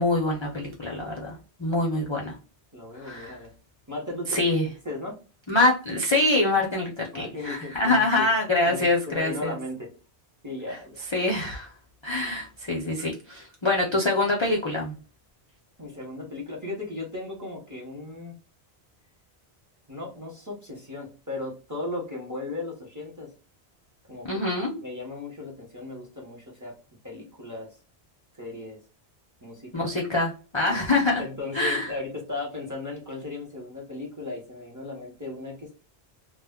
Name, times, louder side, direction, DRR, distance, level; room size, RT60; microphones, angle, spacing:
voice 1, 0.0-2.4 2.9-3.4 4.3-4.7 5.5-9.6 11.1-11.7 12.0-15.0 24.2-24.8 29.7-31.2 31.5-32.0, left 2 dB, 40° left, -2 dB, 0.4 m, -25 dB
voice 2, 2.7-3.5 3.9-4.6 4.8-5.2 7.1-8.3 8.6-9.9 10.4-11.0 15.8-18.3 19.9-23.3 24.1-26.7 27.0-27.7 28.3-28.8 29.4-29.9 30.7-30.8 31.2-35.7, left 2 dB, 20° right, -1 dB, 0.8 m, -36 dB
2.2 x 2.2 x 3.5 m, 0.35 s
omnidirectional pair, 1.1 m